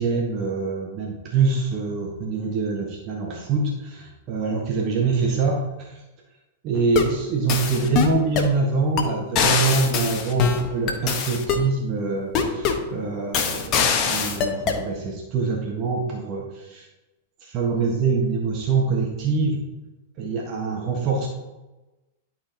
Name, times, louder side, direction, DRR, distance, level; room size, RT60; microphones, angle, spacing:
voice 1, 0.0-6.0 6.6-16.9 17.4-19.6 20.2-21.3, right 4 dB, 40° right, 0 dB, 1.2 m, -24 dB
sound 1, 6.7-7.2 7.5-8.5 9.0-9.1 9.4-11.7 12.3-12.9 13.3-14.8, left 6 dB, 35° left, 0.9 m, -23 dB
11.5 x 4.4 x 2.8 m, 1.1 s
figure-of-eight pair, 100°, 0 cm